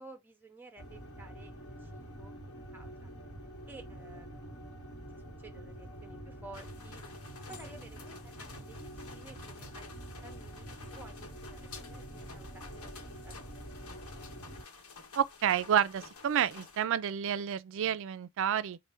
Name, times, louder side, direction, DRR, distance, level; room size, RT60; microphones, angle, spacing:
voice 1, 0.0-2.4 2.7-3.1 3.7-4.6 5.1-7.0 7.5-9.9 10.2-13.0 13.2-13.7, right 2 dB, 10° right, 0.5 m, -53 dB
sound 1, 0.8-14.6, right 1 dB, 65° left, 1.1 m, -47 dB
sound 2, 6.5-16.8, left 4 dB, 90° left, 1.0 m, -51 dB
voice 2, 15.2-18.8, right 9 dB, 60° right, 0.3 m, -30 dB
4.1 x 2.1 x 3.3 m
head